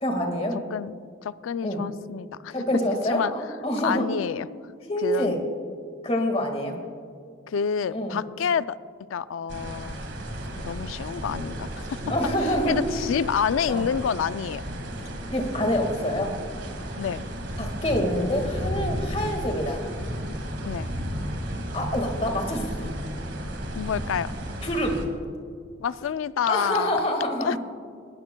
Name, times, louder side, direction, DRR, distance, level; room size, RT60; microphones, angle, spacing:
voice 1, 0.0-0.6 1.6-1.8 2.5-4.1 4.9-5.4 6.0-6.8 7.9-8.2 12.1-12.8 13.7-13.8 15.3-16.3 17.6-19.8 21.7-22.7 24.6-25.1 26.4-27.6, equal, 30° left, 3 dB, 1.7 m, -26 dB
voice 2, 0.7-2.5 3.0-3.3 3.8-4.5 5.0-5.5 7.5-8.8 9.1-10.0 10.6-12.0 12.4-14.6 17.0-17.2 20.6-20.9 23.8-24.3 25.8-27.1 27.4-27.6, left 7 dB, 90° left, 16 dB, 0.4 m, -28 dB
sound 1, 9.5-25.1, equal, 60° right, 1.9 m, -33 dB
20.0 x 17.5 x 2.2 m, 2.3 s
head